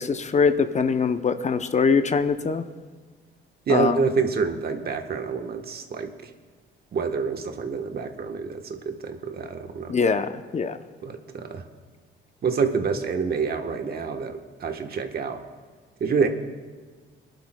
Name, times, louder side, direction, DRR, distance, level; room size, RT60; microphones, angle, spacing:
voice 1, 0.0-2.6 3.7-4.0 9.9-10.8, left 5 dB, 35° left, 9 dB, 0.6 m, -22 dB
voice 2, 3.7-6.3 6.9-10.0 11.0-11.6 12.4-15.4 16.0-16.3, right 5 dB, 50° right, 5 dB, 1.1 m, -27 dB
24.0 x 11.5 x 2.2 m, 1.5 s
cardioid pair, 90°, 20 cm